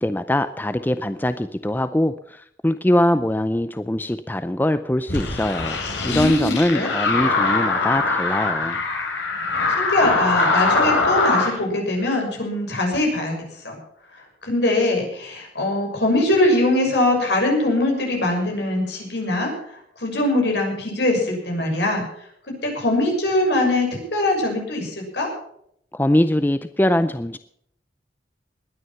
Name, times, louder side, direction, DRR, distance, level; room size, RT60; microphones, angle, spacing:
voice 1, 0.0-8.8 25.9-27.4, left 1 dB, 10° left, 11 dB, 0.5 m, -22 dB
sound 1, 5.1-11.5, left 3 dB, 90° left, 4.1 m, -22 dB
voice 2, 6.1-6.9 9.8-13.4 13.6-13.8 14.1-22.0 22.6-25.3, left 1 dB, 70° left, 1 dB, 6.4 m, -22 dB
20.0 x 9.6 x 5.8 m, 0.69 s
head